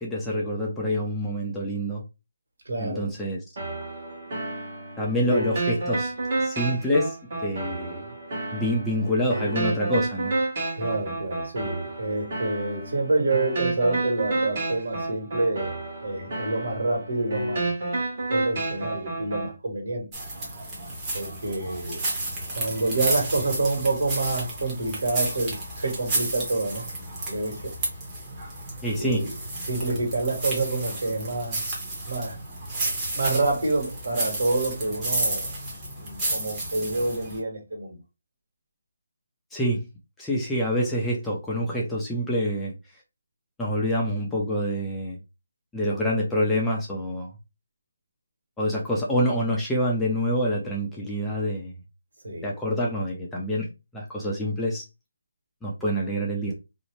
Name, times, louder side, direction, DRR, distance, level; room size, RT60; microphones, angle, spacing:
voice 1, 0.0-2.0 2.8-3.4 5.0-6.1 6.4-7.2 7.4-8.0 8.5-10.3 28.8-29.2 39.5-39.9 40.2-42.7 43.6-45.2 45.7-47.3 48.6-51.7 52.4-53.7 53.9-54.8 55.6-56.5, equal, 5° left, 0.5 m, -26 dB
voice 2, 2.6-3.1 5.2-5.5 10.7-17.7 18.3-20.0 21.1-22.0 22.5-26.8 27.3-27.7 29.0-29.3 29.7-31.6 32.1-32.4 33.1-35.5 35.9-38.0 52.2-52.5, right 2 dB, 70° right, 1.4 m, -27 dB
sound 1, 3.6-19.5, right 2 dB, 45° right, 1.1 m, -30 dB
sound 2, 20.1-37.4, right 2 dB, 20° right, 0.9 m, -32 dB
2.6 x 2.0 x 3.0 m
hypercardioid pair, 165°, 0 cm